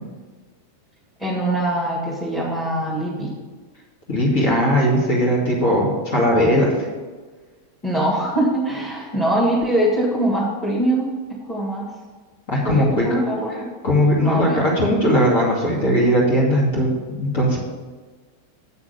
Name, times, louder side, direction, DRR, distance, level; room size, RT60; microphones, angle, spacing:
voice 1, 1.2-3.3 7.8-11.1 11.5-11.9 12.6-13.7 14.2-14.7, right 1 dB, 10° left, -6 dB, 2.1 m, -22 dB
voice 2, 4.1-6.7 12.5-13.2 13.8-16.9 17.2-17.6, equal, 50° left, -5 dB, 2.3 m, -18 dB
8.1 x 6.0 x 6.9 m, 1.4 s
figure-of-eight pair, 90°, 0 cm